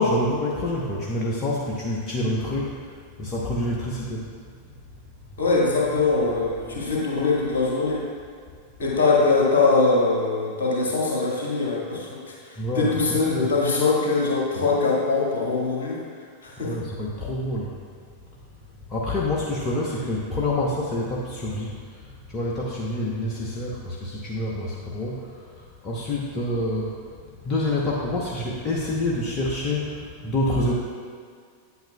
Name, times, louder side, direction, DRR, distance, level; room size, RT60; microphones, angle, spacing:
voice 1, 0.0-2.8 3.2-4.2 12.6-13.4 16.6-17.7 18.9-22.0 22.3-26.9 27.4-30.7, left 1 dB, 30° left, -4 dB, 0.9 m, -27 dB
voice 2, 5.4-8.0 8.8-16.0 16.4-16.7, left 3 dB, 60° left, -4 dB, 1.8 m, -22 dB
8.8 x 8.1 x 2.3 m, 2.1 s
figure-of-eight pair, 90°, 0 cm